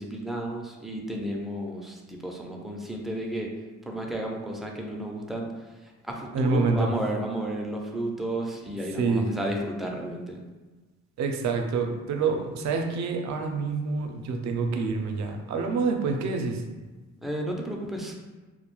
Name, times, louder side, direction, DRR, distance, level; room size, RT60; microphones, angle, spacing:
voice 1, 0.0-3.5 3.9-5.5 5.8-10.4 17.2-18.3, right 1 dB, ahead, -1 dB, 0.3 m, -33 dB
voice 2, 6.3-6.9 9.0-9.2 11.2-16.6, right 4 dB, 65° right, 4 dB, 0.4 m, -27 dB
2.2 x 2.1 x 3.0 m, 1.3 s
cardioid pair, 90°, 30 cm